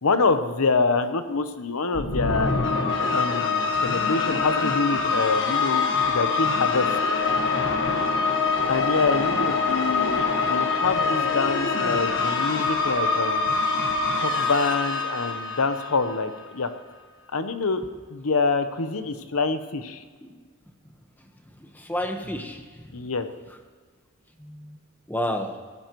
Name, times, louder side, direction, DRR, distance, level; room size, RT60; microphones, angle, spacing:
voice 1, 0.0-2.5 3.1-6.9 8.7-13.6 14.2-16.7 17.3-17.8 18.1-20.0 22.9-23.3, left 4 dB, 80° left, 9 dB, 0.9 m, -26 dB
sound 1, 1.9-16.3, left 4 dB, 60° left, 1.5 m, -24 dB
voice 2, 21.6-22.6 24.4-24.8 25.1-25.5, left 1 dB, 10° left, 4 dB, 1.2 m, -30 dB
18.0 x 15.0 x 3.1 m, 1.5 s
head